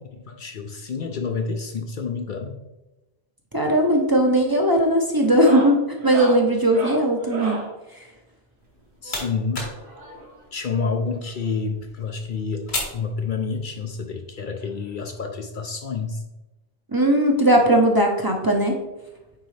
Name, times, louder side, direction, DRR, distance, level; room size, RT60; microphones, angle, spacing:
voice 1, 0.0-2.6 9.0-9.7 10.5-16.2, left 4 dB, 55° left, 5 dB, 0.7 m, -29 dB
voice 2, 3.5-7.6 16.9-18.8, right 1 dB, 25° right, 1 dB, 0.7 m, -18 dB
sound 1, 3.7-4.0 4.3-4.7 5.2-7.7 9.0-10.4 11.5-11.6 11.8-11.9 12.4-12.5 13.7-13.8 15.2-15.3, right 2 dB, 55° right, 1.4 m, -34 dB
sound 2, 8.6-13.9, left 2 dB, 75° left, 1.9 m, -37 dB
9.2 x 4.0 x 3.2 m, 1.0 s
omnidirectional pair, 1.1 m